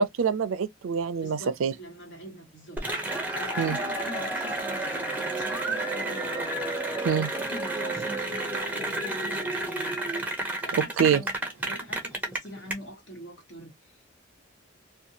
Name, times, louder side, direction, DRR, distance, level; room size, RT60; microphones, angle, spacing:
voice 1, 0.0-1.7 3.6-3.8 7.0-7.3 10.7-11.2, right 6 dB, 80° right, 0.4 m, -25 dB
voice 2, 1.2-6.6 7.1-10.0 10.6-11.4 11.6-14.1, equal, 60° left, 1.4 m, -44 dB
Cheering / Applause, 2.8-12.7, right 2 dB, 10° right, 0.5 m, -30 dB
2.6 x 2.3 x 2.7 m
head